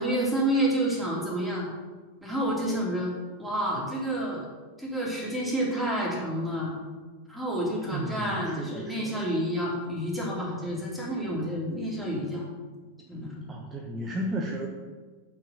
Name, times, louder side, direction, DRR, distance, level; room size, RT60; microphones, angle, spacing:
voice 1, 0.0-1.7 2.2-3.1 3.4-4.5 4.8-6.7 7.3-12.4 13.1-13.4, right 1 dB, 5° right, -5 dB, 3.1 m, -29 dB
voice 2, 7.9-9.2 13.5-14.7, right 1 dB, 20° right, 0 dB, 1.0 m, -34 dB
7.4 x 6.1 x 6.6 m, 1.4 s
figure-of-eight pair, 90°, 0 cm